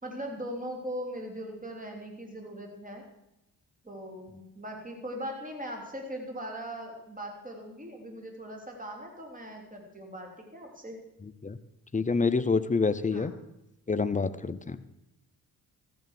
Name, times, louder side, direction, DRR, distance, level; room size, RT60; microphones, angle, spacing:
voice 1, 0.0-3.0 3.8-11.0 13.1-13.3, equal, 15° right, 2 dB, 3.4 m, -40 dB
voice 2, 11.9-13.3 13.9-14.8, left 4 dB, 15° left, 14 dB, 0.6 m, -27 dB
14.0 x 7.0 x 6.6 m, 0.86 s
hypercardioid pair, 45°, 48 cm